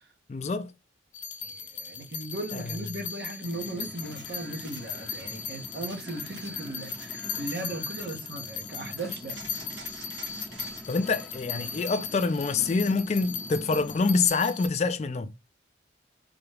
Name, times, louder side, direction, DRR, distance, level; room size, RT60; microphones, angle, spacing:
voice 1, 0.3-0.7 2.5-2.6 10.9-15.3, left 4 dB, 35° left, 0.3 m, -26 dB
sound 1, 1.1-14.7, left 7 dB, 80° left, 0.6 m, -38 dB
voice 2, 1.4-9.4, right 1 dB, 60° right, 1.0 m, -37 dB
sound 2, 3.4-14.3, equal, 5° left, 0.9 m, -45 dB
sound 3, 4.1-5.3 5.8-8.1 9.3-10.8 14.3-14.4, right 4 dB, 90° right, 1.4 m, -48 dB
3.8 x 2.3 x 3.2 m
head